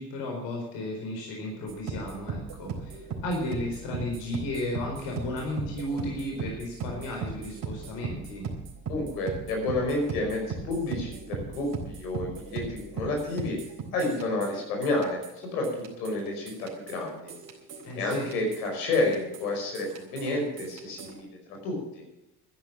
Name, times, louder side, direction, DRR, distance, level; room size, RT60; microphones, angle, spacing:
voice 1, 0.0-8.5 17.8-18.3, left 1 dB, 65° left, 0 dB, 4.7 m, -34 dB
sound 1, 1.7-21.2, right 5 dB, 45° right, 4.0 m, -38 dB
voice 2, 8.9-13.6 13.9-15.2 15.5-17.3 18.0-21.3 21.6-21.8, left 2 dB, 80° left, 1 dB, 5.4 m, -30 dB
12.5 x 10.5 x 7.4 m, 0.92 s
hypercardioid pair, 70°, 46 cm